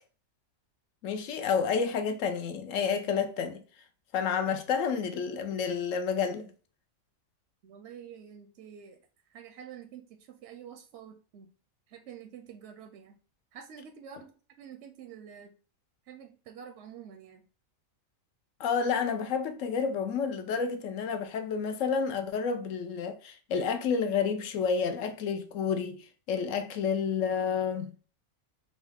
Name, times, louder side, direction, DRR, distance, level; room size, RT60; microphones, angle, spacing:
voice 1, 1.0-3.6 4.1-6.5 18.6-27.9, left 6 dB, 70° left, 0.9 m, -30 dB
voice 2, 7.6-9.0 9.3-11.5 11.9-13.2 13.5-15.5 16.1-17.4, right 8 dB, 65° right, 0.7 m, -48 dB
3.9 x 2.7 x 3.4 m
omnidirectional pair, 1.5 m